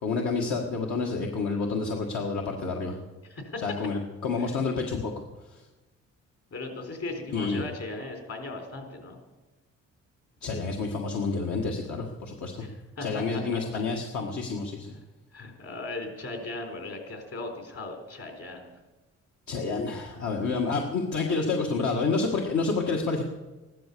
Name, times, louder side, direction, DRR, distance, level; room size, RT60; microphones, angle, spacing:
voice 1, 0.0-3.0 3.6-5.1 5.5-5.6 7.3-7.6 10.4-12.7 13.0-14.9 19.5-23.2, left 4 dB, 70° left, 0 dB, 1.9 m, -29 dB
voice 2, 3.2-3.6 4.4-4.6 4.9-5.0 6.5-9.2 12.6-13.8 15.3-18.7, left 2 dB, 50° left, 4 dB, 4.1 m, -38 dB
15.0 x 12.0 x 6.9 m, 1.2 s
cardioid pair, 90°, 30 cm